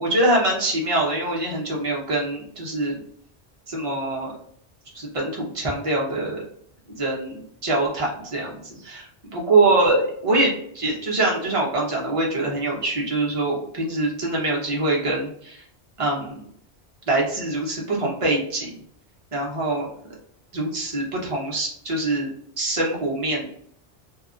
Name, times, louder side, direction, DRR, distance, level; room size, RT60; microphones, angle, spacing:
voice 1, 0.0-3.0 3.7-4.3 4.9-6.4 6.9-9.0 9.3-15.6 16.0-16.4 17.1-18.7 19.3-19.9 20.5-22.3 22.6-23.5, right 2 dB, 35° right, -3 dB, 0.8 m, -24 dB
2.7 x 2.3 x 2.4 m, 0.65 s
omnidirectional pair, 1.1 m